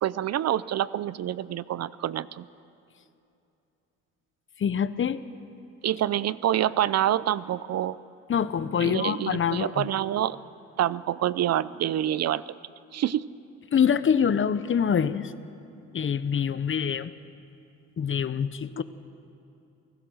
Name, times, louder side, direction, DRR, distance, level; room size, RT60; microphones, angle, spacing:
voice 1, 0.0-2.4 5.8-8.0 8.8-10.4 10.8-12.4 12.9-13.2, right 12 dB, 60° right, 18 dB, 0.6 m, -27 dB
voice 2, 4.6-5.2 8.3-9.9 13.7-15.3 15.9-17.1 18.0-18.8, left 7 dB, 40° left, 14 dB, 0.9 m, -25 dB
28.5 x 17.0 x 6.4 m, 2.7 s
cardioid pair, 90°, 30 cm